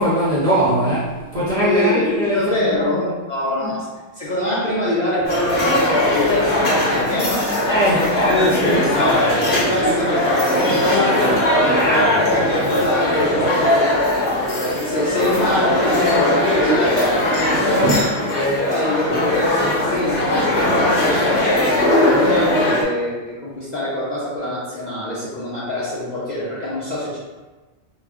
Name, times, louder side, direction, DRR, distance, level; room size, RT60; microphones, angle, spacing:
voice 1, 0.0-3.1 3.6-3.7 7.7-8.8, equal, 40° right, -9 dB, 0.5 m, -20 dB
voice 2, 1.6-3.9 4.1-6.6 6.9-7.7 8.6-14.3 14.7-18.0 18.3-20.2 20.5-21.7 22.0-27.2, left 1 dB, 50° left, -8 dB, 0.6 m, -24 dB
sound 1, 5.2-22.8, left 1 dB, 65° left, 0.9 m, -19 dB
2.3 x 2.0 x 3.5 m, 1.2 s
omnidirectional pair, 1.2 m